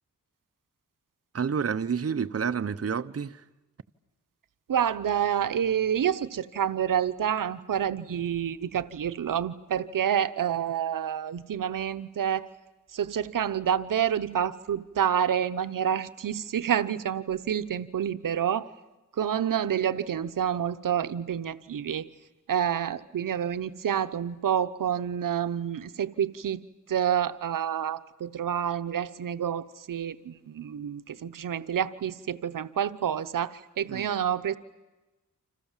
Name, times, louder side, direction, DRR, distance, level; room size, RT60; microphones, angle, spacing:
voice 1, 1.3-3.4 33.9-34.1, right 6 dB, 50° right, 1.0 m, -29 dB
voice 2, 4.7-12.5 12.9-18.7 19.2-22.1 22.5-26.6 26.9-34.6, right 9 dB, 85° right, 0.9 m, -28 dB
29.0 x 27.0 x 7.4 m
wide cardioid pair, 75°, 32 cm